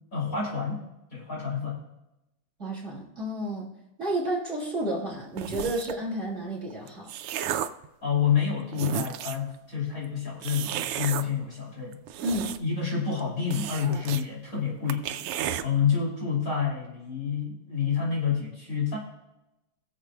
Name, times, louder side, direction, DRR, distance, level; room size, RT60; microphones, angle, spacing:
voice 1, 0.1-0.8 1.1-1.8 8.0-12.0 12.6-15.0 15.6-19.0, left 7 dB, 40° left, -4 dB, 3.3 m, -28 dB
voice 2, 2.6-3.7 4.0-7.1 12.2-12.6, right 1 dB, 35° right, -5 dB, 3.3 m, -31 dB
sound 1, 5.4-6.0 6.7-7.9 8.4-8.5 8.7-9.5 10.4-11.2 11.9-12.8 13.1-13.2 13.5-14.2 14.6-14.7 14.9-15.6, right 10 dB, 90° right, 1.6 m, -33 dB
22.0 x 7.4 x 2.3 m, 0.93 s
omnidirectional pair, 2.4 m